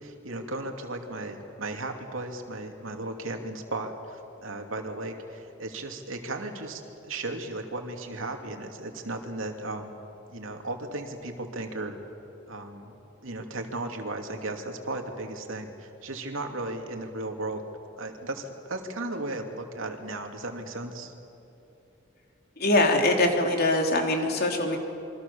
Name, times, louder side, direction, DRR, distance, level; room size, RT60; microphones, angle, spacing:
voice 1, 0.0-10.0 10.3-12.0 12.5-12.9 13.2-17.6 18.0-21.1, right 2 dB, 90° right, 4 dB, 2.7 m, -35 dB
voice 2, 22.6-24.8, left 1 dB, 50° left, 2 dB, 3.4 m, -23 dB
27.0 x 24.5 x 7.1 m, 3.0 s
head